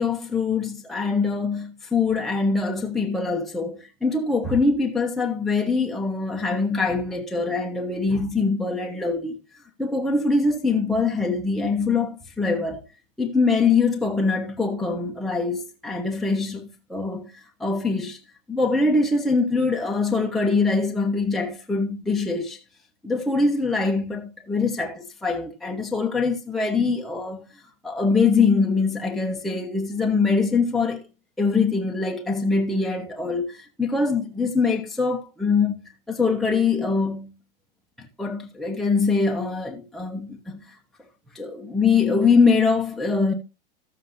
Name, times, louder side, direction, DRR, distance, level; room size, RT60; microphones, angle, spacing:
voice 1, 0.0-9.4 9.8-12.8 13.2-18.2 18.5-22.6 23.0-27.5 27.8-31.0 31.4-37.3 38.2-40.6 41.3-43.3, left 4 dB, ahead, 0.9 m, -23 dB
14.5 x 7.4 x 2.7 m
supercardioid pair, 140°, 29 cm